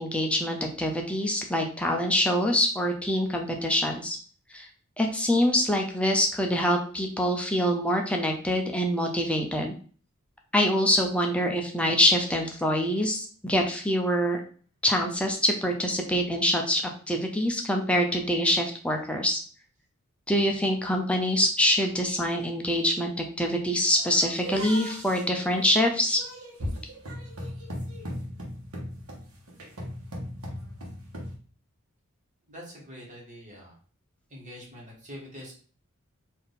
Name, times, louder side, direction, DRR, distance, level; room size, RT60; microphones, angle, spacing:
voice 1, 0.0-4.2 4.5-4.7 5.0-9.7 10.5-14.4 14.8-16.8 17.1-19.4 20.3-23.1 23.4-26.2, equal, 5° left, 2 dB, 0.5 m, -25 dB
sound 1, 23.9-31.4, equal, 80° right, 1.1 m, -38 dB
voice 2, 32.5-33.7 34.3-35.5, equal, 35° right, -3 dB, 1.5 m, -44 dB
3.6 x 2.6 x 3.9 m, 0.43 s
head